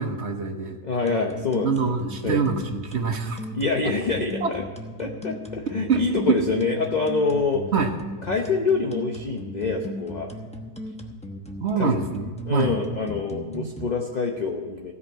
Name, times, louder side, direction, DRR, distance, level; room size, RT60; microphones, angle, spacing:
voice 1, 0.0-0.8 1.6-3.5 4.4-4.5 5.9-6.4 7.7-7.9 11.6-12.7, right 5 dB, 60° right, 5 dB, 1.3 m, -25 dB
voice 2, 0.8-1.7 2.2-2.4 3.5-4.6 5.0-7.6 8.2-10.3 11.8-11.9 12.4-14.9, left 4 dB, 40° left, 1 dB, 0.9 m, -26 dB
sound 1, 1.1-13.9, equal, 5° left, 0.8 m, -36 dB
16.0 x 5.5 x 7.9 m, 1.4 s
omnidirectional pair, 1.3 m